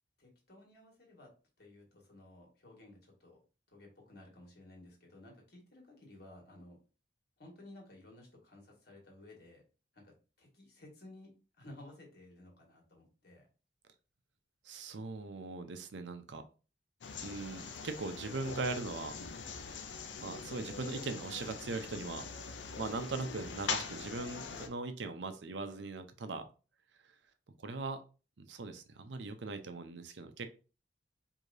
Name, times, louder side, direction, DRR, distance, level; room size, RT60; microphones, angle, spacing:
voice 1, 0.2-1.3 1.6-3.4 3.7-6.8 7.4-9.6 9.9-11.3 11.6-13.5, left 1 dB, 60° left, 1.6 m, -55 dB
voice 2, 14.6-16.4 17.2-19.1 20.1-22.3 22.8-26.4 27.0-27.1 27.6-28.0 28.4-30.5, right 3 dB, 75° right, 0.6 m, -40 dB
sound 1, 17.0-24.7, left 5 dB, 90° left, 0.6 m, -43 dB
4.8 x 2.8 x 2.6 m
head